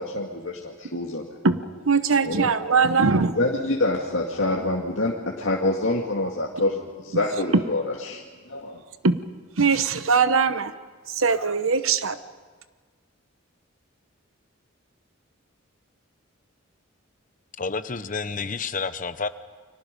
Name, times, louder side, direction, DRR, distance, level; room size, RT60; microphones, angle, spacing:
voice 1, 0.0-1.4 2.1-2.5 3.3-8.8, left 2 dB, 65° left, -2 dB, 2.2 m, -26 dB
voice 2, 1.9-3.3 9.0-9.2 9.6-10.7 11.1-12.2, right 5 dB, 85° right, 11 dB, 1.0 m, -21 dB
voice 3, 17.6-19.3, left 4 dB, 40° left, 11 dB, 1.0 m, -29 dB
30.0 x 25.0 x 5.3 m, 1.5 s
head